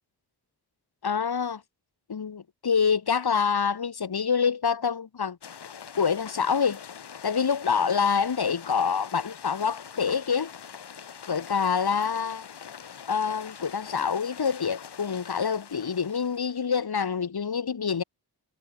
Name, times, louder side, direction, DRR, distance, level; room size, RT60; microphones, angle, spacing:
voice 1, 1.0-1.6 2.1-5.4 6.0-6.8 7.2-10.5 11.3-12.5 13.1-18.0, left 6 dB, 70° left, 5.5 m, -26 dB
sound 1, 5.4-16.7, left 7 dB, 90° left, 6.4 m, -44 dB
cardioid pair, 75°, 39 cm